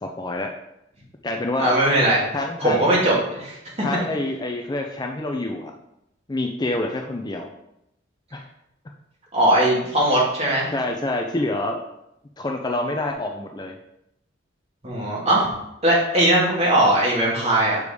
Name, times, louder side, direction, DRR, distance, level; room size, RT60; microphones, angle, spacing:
voice 1, 0.0-0.5 1.2-1.7 2.3-3.0 3.8-5.7 6.3-7.5 8.3-8.4 10.7-11.8 12.4-13.7, left 2 dB, 20° left, 3 dB, 0.5 m, -27 dB
voice 2, 1.6-2.2 2.6-3.6 3.9-4.0 9.3-10.7 14.8-15.5 15.8-17.8, right 1 dB, 35° right, -5 dB, 2.4 m, -19 dB
6.9 x 4.9 x 5.1 m, 0.84 s
head